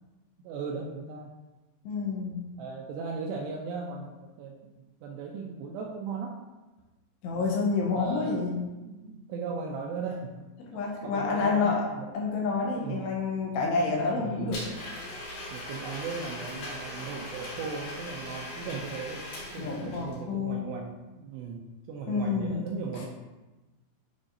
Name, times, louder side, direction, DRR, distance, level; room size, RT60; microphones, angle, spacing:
voice 1, 0.4-1.3 2.6-6.4 7.3-8.4 8.9-12.5 12.8-13.2 14.2-14.7 15.5-19.2 19.5-23.1, right 5 dB, 80° right, 0 dB, 2.5 m, -38 dB
voice 2, 1.9-2.4 7.2-8.6 10.6-11.8 12.1-14.6 19.6-20.7 22.1-22.7 22.9-23.0, left 4 dB, 80° left, -2 dB, 2.7 m, -28 dB
Domestic sounds home sounds, 14.5-20.2, left 1 dB, 60° left, 2.5 m, -39 dB
8.6 x 4.6 x 2.6 m, 1.1 s
omnidirectional pair, 5.3 m